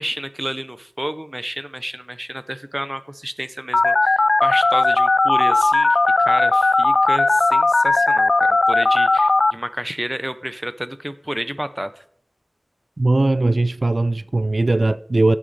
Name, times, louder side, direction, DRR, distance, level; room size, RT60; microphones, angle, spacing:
voice 1, 0.0-12.0, equal, 10° right, 0.8 m, -30 dB
Telephone, 3.7-9.5, left 3 dB, 70° left, 0.3 m, -17 dB
voice 2, 13.0-15.4, right 2 dB, 60° right, 0.3 m, -19 dB
14.5 x 6.3 x 4.2 m
wide cardioid pair, 55°, 0 cm